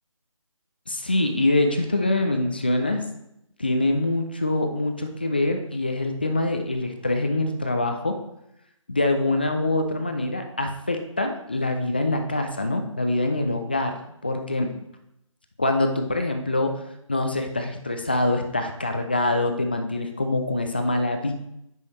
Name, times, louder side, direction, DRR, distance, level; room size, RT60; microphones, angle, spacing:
voice 1, 0.9-3.0 3.6-8.1 8.9-14.0 14.2-14.7 15.6-16.7 17.1-21.3, left 2 dB, 20° left, 5 dB, 0.4 m, -24 dB
9.5 x 5.4 x 3.1 m, 0.81 s
figure-of-eight pair, 155°, 17 cm